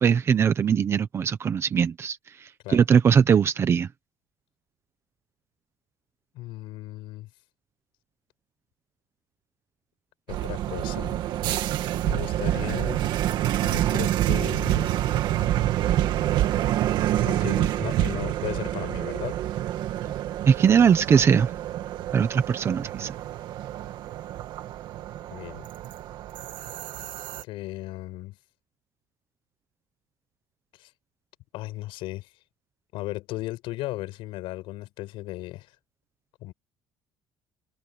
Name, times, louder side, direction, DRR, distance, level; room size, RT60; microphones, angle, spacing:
voice 1, 0.0-3.9 20.1-20.2 20.4-21.5 22.1-23.1, right 7 dB, 30° right, 1.1 m, -21 dB
voice 2, 6.3-7.3 10.3-11.2 12.0-13.0 13.6-14.9 17.3-19.4 25.3-25.7 27.4-28.4 30.8-30.9 31.5-32.3 32.9-35.7 36.4-36.5, left 18 dB, 75° left, 6.2 m, -36 dB
sound 1, 10.3-27.4, right 13 dB, 55° right, 2.2 m, -27 dB
open air
cardioid pair, 165°, 9 cm